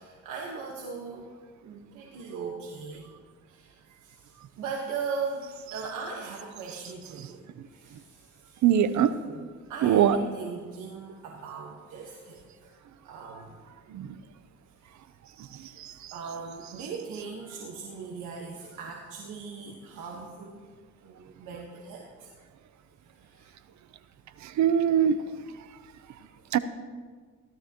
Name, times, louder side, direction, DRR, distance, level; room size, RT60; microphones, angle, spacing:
voice 1, 0.0-1.3 1.6-3.1 3.5-9.0 9.3-12.7 13.0-13.6 15.6-20.7 21.0-22.3 23.0-23.5, right 5 dB, 90° right, -1 dB, 1.5 m, -39 dB
voice 2, 8.6-9.1 9.8-10.2 13.9-14.1 15.8-15.9 24.4-25.1 26.5-26.6, right 9 dB, 70° right, 13 dB, 0.8 m, -22 dB
16.5 x 12.5 x 3.0 m, 1.5 s
cardioid pair, 90°, 30 cm